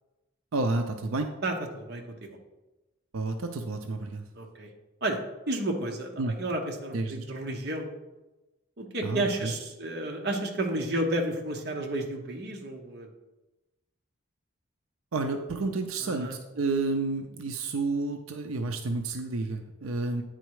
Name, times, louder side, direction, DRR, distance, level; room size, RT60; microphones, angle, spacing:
voice 1, 0.5-1.3 3.1-4.2 6.2-6.4 6.9-7.2 9.0-9.5 15.1-16.3 16.5-20.2, right 3 dB, 90° right, 6 dB, 0.6 m, -30 dB
voice 2, 1.4-2.4 4.3-4.7 5.0-5.2 5.5-7.9 8.8-13.1 16.0-16.4, right 1 dB, 50° right, 1 dB, 1.0 m, -32 dB
9.1 x 4.2 x 4.7 m, 1.1 s
head